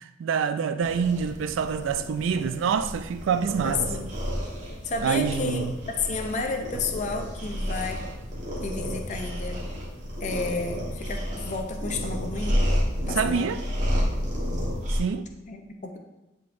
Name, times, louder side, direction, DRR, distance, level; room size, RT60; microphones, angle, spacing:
voice 1, 0.0-3.9 5.0-5.7 13.0-13.6 14.9-15.3, right 6 dB, 80° right, 0.3 m, -26 dB
sound 1, 0.8-15.0, equal, 40° right, 1.2 m, -31 dB
voice 2, 3.6-4.1 4.8-8.0 8.6-9.6 10.2-12.6 13.1-13.5 15.5-16.0, left 3 dB, 40° left, 0.5 m, -31 dB
10.5 x 3.7 x 2.5 m
head